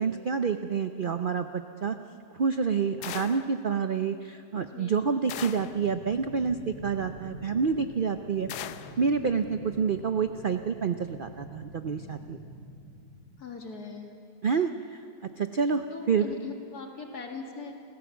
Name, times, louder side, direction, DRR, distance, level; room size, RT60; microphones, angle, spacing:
voice 1, 0.0-2.0 2.3-8.5 9.0-12.4 14.4-16.3, right 6 dB, 85° right, 8 dB, 0.4 m, -28 dB
sound 1, 3.0-3.5 5.3-5.8 8.5-9.0, left 11 dB, 75° left, 1.3 m, -38 dB
voice 2, 4.5-5.2 13.4-14.1 15.9-17.7, left 5 dB, 60° left, 2 dB, 2.6 m, -40 dB
sound 2, 5.2-13.2, equal, 65° right, 4.8 m, -46 dB
28.5 x 15.5 x 7.2 m, 2.5 s
omnidirectional pair, 1.9 m